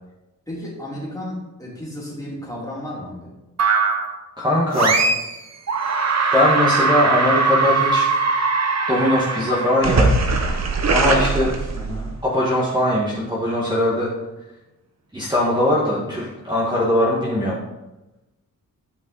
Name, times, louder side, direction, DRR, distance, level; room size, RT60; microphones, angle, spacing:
voice 1, 0.5-3.3 11.7-12.1 15.9-16.1, left 1 dB, 10° left, -5 dB, 3.0 m, -33 dB
sound 1, 3.6-4.2 4.7-5.4 5.7-12.1, right 4 dB, 50° right, 1.0 m, -20 dB
voice 2, 4.4-5.0 6.3-8.1 8.9-10.2 10.9-11.7 12.2-14.1 15.1-17.6, left 1 dB, 15° right, -6 dB, 1.7 m, -20 dB
11.5 x 5.3 x 4.1 m, 1.0 s
wide cardioid pair, 115°, 34 cm